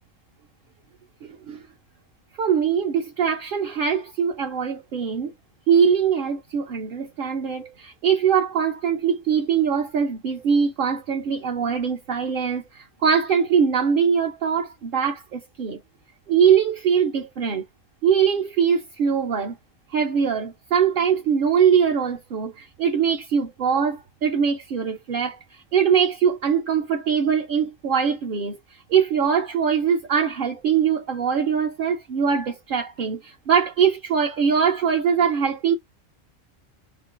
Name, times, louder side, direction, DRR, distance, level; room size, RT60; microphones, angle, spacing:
voice 1, 1.2-1.6 2.4-5.3 5.7-15.8 16.3-17.6 18.0-19.5 19.9-25.4 25.7-28.6 28.9-35.7, right 7 dB, 60° right, 0.6 m, -22 dB
3.7 x 2.4 x 2.4 m
omnidirectional pair, 1.3 m